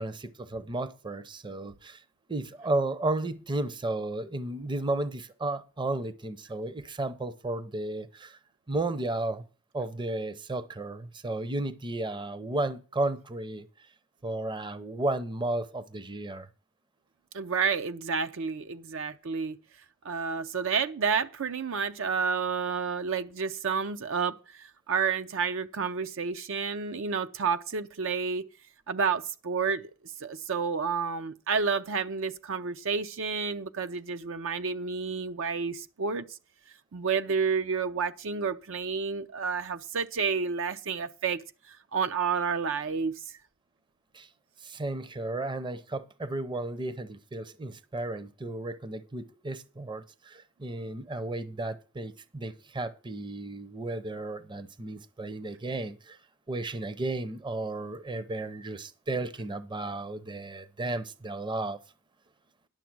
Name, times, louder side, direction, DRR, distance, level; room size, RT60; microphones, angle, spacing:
voice 1, 0.0-2.0 2.3-8.4 8.7-9.4 9.7-13.7 14.2-16.5 44.1-44.3 44.6-56.2 56.5-61.8, right 2 dB, 20° right, 0.6 m, -33 dB
voice 2, 17.3-19.6 20.0-28.4 28.9-29.9 30.2-36.2 36.9-41.4 41.7-43.2, right 5 dB, 65° right, 0.6 m, -30 dB
10.5 x 6.9 x 6.0 m
head